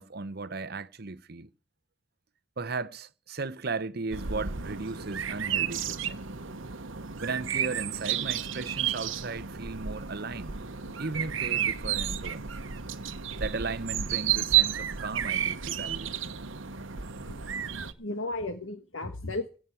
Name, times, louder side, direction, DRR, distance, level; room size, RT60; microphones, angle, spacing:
voice 1, 0.0-1.5 2.6-6.2 7.2-10.6 11.0-12.5 13.4-16.1, right 3 dB, 50° right, 0.8 m, -36 dB
sound 1, 4.1-17.9, right 9 dB, 70° right, 1.1 m, -31 dB
voice 2, 17.8-19.6, left 2 dB, 75° left, 1.4 m, -35 dB
16.5 x 6.1 x 9.0 m
head